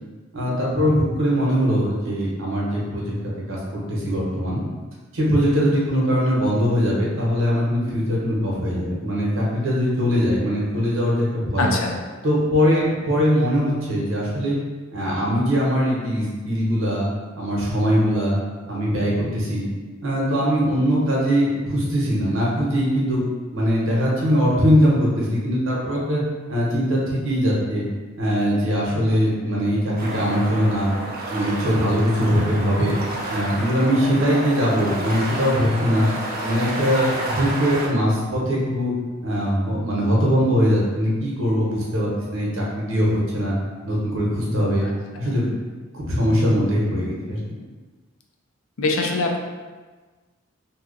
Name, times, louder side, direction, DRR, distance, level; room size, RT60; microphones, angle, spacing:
voice 1, 0.3-3.0 3.5-4.6 5.1-11.7 12.2-14.6 14.9-17.1 17.3-18.4 18.7-19.7 20.0-23.2 23.5-26.2 26.5-27.8 28.2-30.9 31.3-33.0 33.3-36.1 36.4-38.9 39.2-43.6 43.8-44.9 45.2-45.5 45.9-47.4, equal, 75° right, -5 dB, 1.0 m, -21 dB
voice 2, 11.6-12.0 44.8-44.9 45.2-45.3 48.8-49.4, left 3 dB, 75° left, 1 dB, 0.5 m, -23 dB
sound 1, 30.0-37.9, right 1 dB, 50° right, 0.6 m, -30 dB
2.8 x 2.4 x 3.8 m, 1.3 s
head